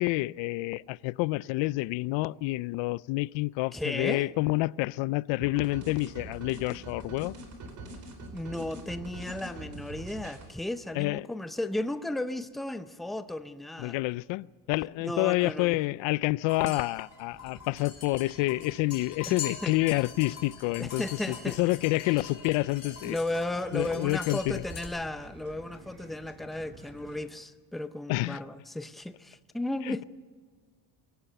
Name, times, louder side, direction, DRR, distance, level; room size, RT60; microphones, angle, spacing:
voice 1, 0.0-7.3 10.9-11.3 13.8-23.2 23.7-24.6 28.1-28.4 29.8-30.0, left 21 dB, 90° left, 0.6 m, -28 dB
voice 2, 3.7-4.2 8.3-14.0 15.0-15.8 19.2-19.7 20.8-21.6 23.1-30.0, left 1 dB, ahead, 0.5 m, -34 dB
sound 1, 5.4-10.5, right 2 dB, 40° right, 4.0 m, -43 dB
sound 2, 16.5-24.8, left 7 dB, 35° left, 4.8 m, -43 dB
sound 3, 17.3-27.2, right 2 dB, 25° right, 3.8 m, -51 dB
23.5 x 17.5 x 6.8 m
cardioid pair, 155°, 44 cm